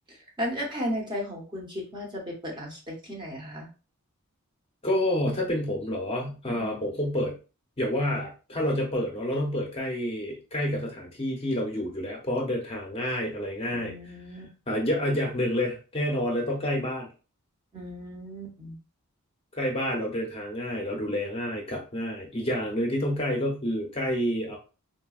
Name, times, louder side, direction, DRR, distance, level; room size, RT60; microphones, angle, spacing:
voice 1, 0.1-3.7 6.5-6.9 13.7-14.5 17.7-18.8, equal, 20° right, -1 dB, 0.8 m, -35 dB
voice 2, 4.8-7.3 7.8-13.9 14.7-17.1 19.5-24.6, left 1 dB, 25° left, 0 dB, 0.7 m, -28 dB
3.9 x 2.2 x 2.3 m, 0.33 s
head